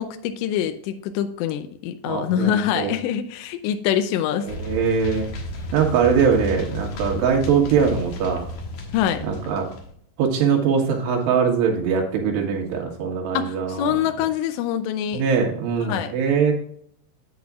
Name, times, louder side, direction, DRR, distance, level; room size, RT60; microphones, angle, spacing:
voice 1, 0.0-4.5 8.9-9.2 13.3-15.2 15.8-16.1, left 10 dB, 85° left, 7 dB, 2.9 m, -25 dB
voice 2, 2.1-3.0 4.5-5.3 5.7-8.5 9.3-9.7 10.2-13.9 15.1-16.5, right 6 dB, 75° right, 1 dB, 3.6 m, -22 dB
sound 1, 4.5-9.9, left 1 dB, 65° left, 2.2 m, -32 dB
8.6 x 8.0 x 2.4 m, 0.62 s
omnidirectional pair, 5.0 m